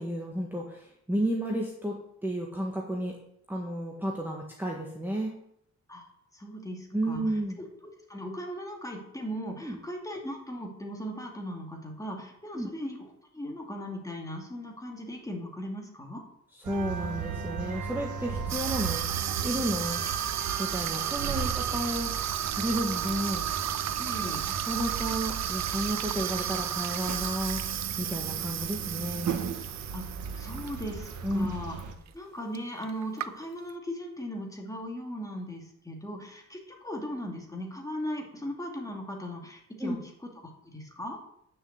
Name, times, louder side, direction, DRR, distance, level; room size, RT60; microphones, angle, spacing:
voice 1, 0.0-2.0 2.2-3.1 3.5-5.3 6.9-7.6 9.6-9.8 12.5-12.7 16.6-19.1 19.4-20.0 20.6-23.5 24.2-24.4 24.6-27.6 28.0-29.3 31.2-31.5 39.8-40.0, right 1 dB, 5° right, -1 dB, 1.6 m, -32 dB
voice 2, 6.3-7.2 8.1-16.2 24.0-24.4 29.9-30.1 30.4-31.8 32.1-40.0 40.6-41.2, equal, 10° left, 0 dB, 2.5 m, -38 dB
sound 1, 16.6-32.0, right 6 dB, 90° right, 1.5 m, -36 dB
Water tap faucet / Sink (filling or washing), 18.5-31.2 31.5-31.8 32.5-32.6 32.8-33.7, right 10 dB, 65° right, 0.6 m, -33 dB
9.7 x 6.6 x 8.1 m, 0.72 s
wide cardioid pair, 130°, 29 cm